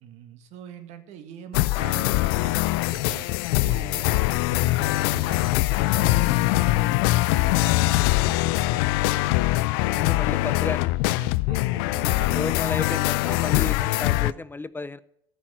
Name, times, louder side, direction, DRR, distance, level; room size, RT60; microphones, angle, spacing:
voice 1, 0.0-3.3 3.6-7.0 7.3-9.0 11.2-12.7, right 8 dB, 65° right, 8 dB, 1.6 m, -43 dB
sound 1, 1.5-14.3, left 19 dB, 75° left, 0.4 m, -23 dB
voice 2, 9.9-10.9 12.3-15.0, left 3 dB, 15° left, 16 dB, 0.5 m, -33 dB
13.5 x 6.0 x 7.7 m, 0.75 s
hypercardioid pair, 65°, 13 cm